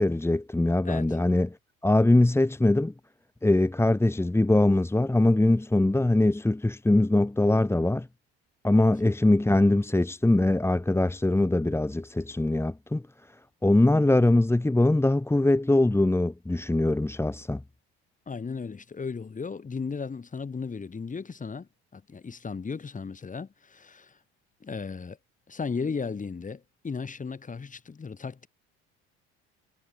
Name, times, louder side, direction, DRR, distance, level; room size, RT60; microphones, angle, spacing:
voice 1, 0.0-1.6 1.8-2.9 3.4-8.1 8.6-13.0 13.6-17.6, left 2 dB, 10° left, 2.6 m, -22 dB
voice 2, 0.8-1.2 8.8-8.9 18.3-24.2 24.6-25.2 25.5-28.5, left 5 dB, 25° left, 6.4 m, -35 dB
supercardioid pair, 85°, 29 cm